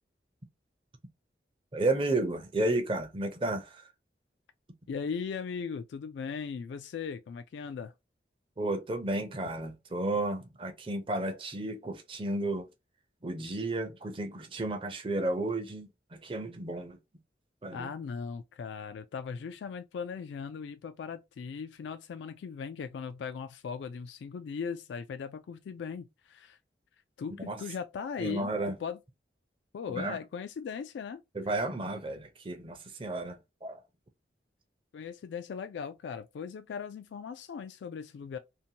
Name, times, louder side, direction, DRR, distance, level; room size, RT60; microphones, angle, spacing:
voice 1, 1.7-3.8 8.6-12.7 13.2-17.0 17.6-17.9 27.4-27.6 28.2-28.7 29.9-30.2 31.3-33.8, right 2 dB, 30° right, 0.5 m, -32 dB
voice 2, 4.9-7.9 17.7-26.6 27.2-29.0 29.7-31.2 34.9-38.4, left 6 dB, 90° left, 0.3 m, -38 dB
2.7 x 2.1 x 2.7 m
head